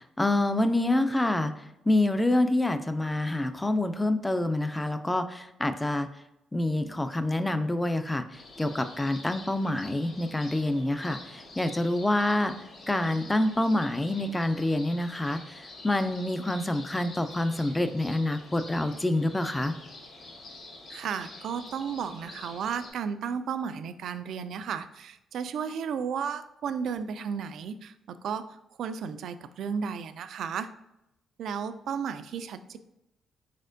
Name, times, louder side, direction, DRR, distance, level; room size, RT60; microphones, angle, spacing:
voice 1, 0.0-1.5 1.9-6.1 6.5-8.3 8.6-12.5 12.9-19.7, left 1 dB, 10° left, 10 dB, 0.4 m, -27 dB
sound 1, 8.3-22.9, left 2 dB, 55° left, 1.4 m, -47 dB
voice 2, 20.9-30.7 31.4-32.8, right 7 dB, 70° right, 11 dB, 0.3 m, -34 dB
4.3 x 4.2 x 2.5 m, 0.88 s
cardioid pair, 95°, 0 cm